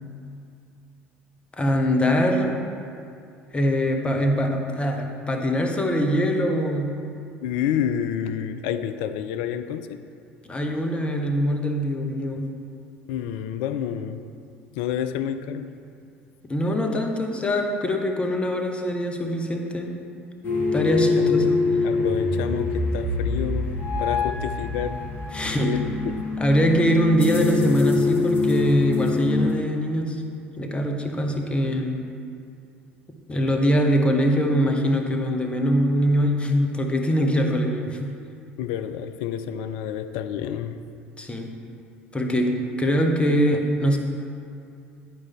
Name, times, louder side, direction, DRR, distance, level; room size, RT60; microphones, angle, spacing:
voice 1, 1.6-2.6 3.5-6.9 10.5-12.4 16.4-19.9 20.7-21.6 25.3-25.8 26.4-30.2 30.6-32.0 33.3-38.1 41.2-41.5 42.1-44.0, equal, 15° left, 3 dB, 1.0 m, -23 dB
voice 2, 7.4-10.0 13.1-14.2 14.8-15.7 21.2-21.6 21.8-25.0 25.4-26.3 38.6-40.8, left 9 dB, 60° left, 10 dB, 0.4 m, -29 dB
sound 1, 20.4-29.5, left 3 dB, 35° left, 1.6 m, -24 dB
10.5 x 4.9 x 4.2 m, 2.5 s
figure-of-eight pair, 65°, 6 cm